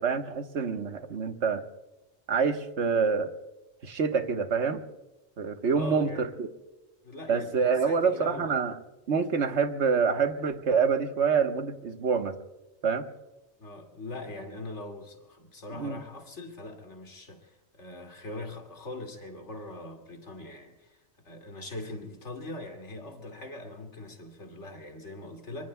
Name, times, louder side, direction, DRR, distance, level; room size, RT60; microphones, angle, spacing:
voice 1, 0.0-1.6 2.3-3.3 3.8-4.8 5.4-6.5 7.3-8.8 9.1-12.3 12.8-13.1 15.8-16.0, right 5 dB, 60° right, 1.4 m, -26 dB
voice 2, 5.8-6.3 7.0-8.6 13.6-21.0 21.2-25.7, left 2 dB, 60° left, 2.6 m, -41 dB
25.0 x 25.0 x 2.2 m
omnidirectional pair, 1.4 m